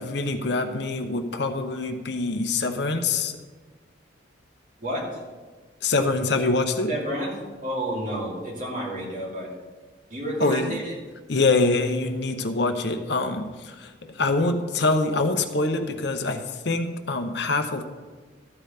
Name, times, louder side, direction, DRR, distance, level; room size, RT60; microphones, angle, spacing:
voice 1, 0.0-3.4 5.8-6.9 10.4-10.8 11.3-17.8, left 3 dB, 60° left, 7 dB, 0.8 m, -25 dB
voice 2, 4.8-5.2 6.9-7.3 7.6-9.5 10.1-10.9, right 1 dB, 40° right, -3 dB, 2.7 m, -30 dB
13.0 x 5.0 x 6.7 m, 1.4 s
head